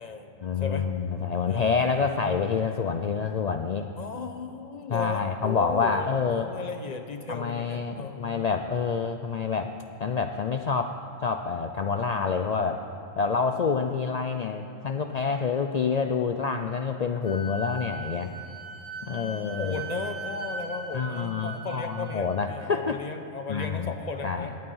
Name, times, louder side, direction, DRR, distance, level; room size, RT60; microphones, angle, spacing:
voice 1, 0.4-3.9 4.9-6.5 7.3-9.7 10.0-11.0 11.2-12.8 13.2-18.3 19.0-19.8 20.9-23.0 23.5-23.9 24.2-24.5, left 5 dB, 85° left, 6 dB, 0.3 m, -27 dB
voice 2, 1.5-2.4 4.0-8.5 19.0-24.5, left 4 dB, 35° left, 6 dB, 0.9 m, -36 dB
Wind instrument woodwind instrument, 17.2-22.4, right 2 dB, 70° right, 3.8 m, -39 dB
18.5 x 9.5 x 5.5 m, 2.7 s
omnidirectional pair, 1.3 m